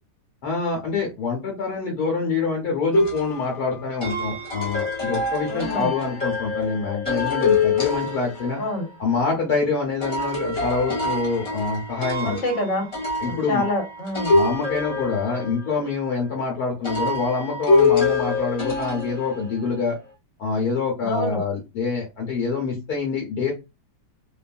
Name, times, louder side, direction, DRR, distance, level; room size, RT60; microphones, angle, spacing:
voice 1, 0.4-8.6 9.0-12.4 13.2-13.6 14.3-20.0 20.4-23.5, left 4 dB, 65° left, -1 dB, 1.3 m, -26 dB
sound 1, 2.9-8.8 10.0-16.1 16.8-19.8, left 3 dB, 25° left, 0.9 m, -25 dB
voice 2, 5.5-5.9 8.6-8.9 12.2-12.9 13.2-14.3 21.0-21.4, left 1 dB, 45° left, 0 dB, 1.4 m, -26 dB
3.1 x 2.3 x 2.4 m, 0.25 s
omnidirectional pair, 1.9 m